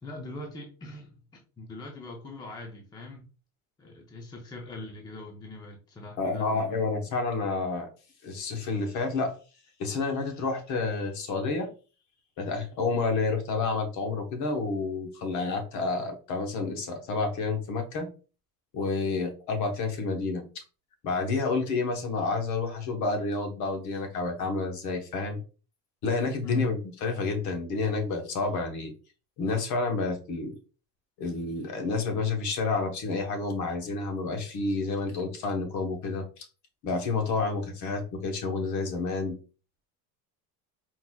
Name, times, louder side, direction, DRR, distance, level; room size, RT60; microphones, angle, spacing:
voice 1, 0.0-3.2 3.8-7.1 26.4-26.7, left 2 dB, 10° left, 1 dB, 0.5 m, -40 dB
voice 2, 6.2-7.9 8.2-9.4 9.8-11.7 12.4-18.1 18.7-20.6 21.0-25.4 26.0-28.9 29.4-30.6 31.2-36.4 36.8-39.4, left 3 dB, 50° left, 4 dB, 1.0 m, -29 dB
4.5 x 3.8 x 2.2 m, 0.35 s
cardioid pair, 170°, 37 cm